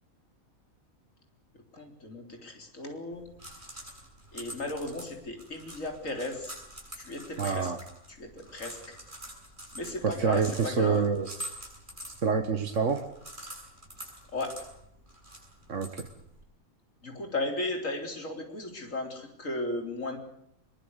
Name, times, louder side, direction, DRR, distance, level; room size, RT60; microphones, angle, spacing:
voice 1, 1.7-3.3 4.3-6.5 7.0-7.7 8.1-9.0 9.7-11.0 14.3-14.5 17.0-20.2, left 2 dB, 65° left, 4 dB, 4.4 m, -35 dB
sound 1, 3.1-16.4, equal, 35° right, 7.7 m, -46 dB
voice 2, 7.4-7.8 10.0-11.4 12.2-13.0 15.7-16.1, right 5 dB, 60° right, 6 dB, 1.9 m, -27 dB
22.5 x 22.5 x 8.3 m, 0.73 s
omnidirectional pair, 1.5 m